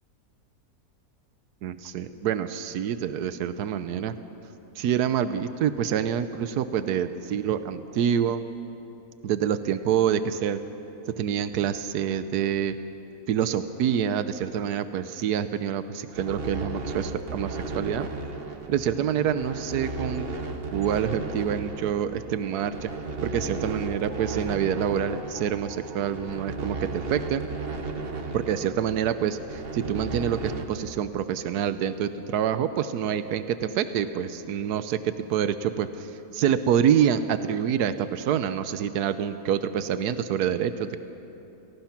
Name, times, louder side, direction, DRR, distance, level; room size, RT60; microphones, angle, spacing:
voice 1, 1.6-4.1 4.8-8.4 9.2-10.6 11.2-12.7 13.3-18.1 18.7-20.3 20.7-22.9 23.2-27.4 28.3-41.0, right 9 dB, 80° right, 11 dB, 1.3 m, -26 dB
sound 1, 16.1-30.6, right 3 dB, 40° right, 1.3 m, -35 dB
Mallet percussion, 22.8-27.8, left 1 dB, 25° right, 2.1 m, -47 dB
30.0 x 18.0 x 5.9 m, 2.9 s
omnidirectional pair, 1.7 m